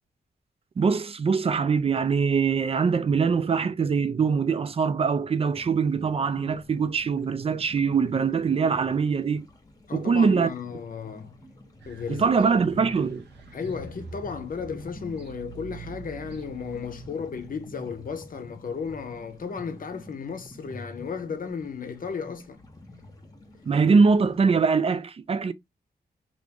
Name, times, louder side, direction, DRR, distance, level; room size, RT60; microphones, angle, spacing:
voice 1, 0.8-9.5 9.9-10.5 12.1-13.2 23.7-25.5, right 5 dB, 35° right, 0.4 m, -23 dB
sound 1, 5.5-24.4, left 1 dB, 20° left, 0.9 m, -47 dB
voice 2, 9.9-11.4 11.9-12.3 12.8-12.9 13.5-22.6, left 6 dB, 55° left, 0.7 m, -34 dB
sound 2, 11.8-17.1, right 7 dB, 85° right, 0.6 m, -45 dB
2.9 x 2.5 x 3.5 m
wide cardioid pair, 115°, 17 cm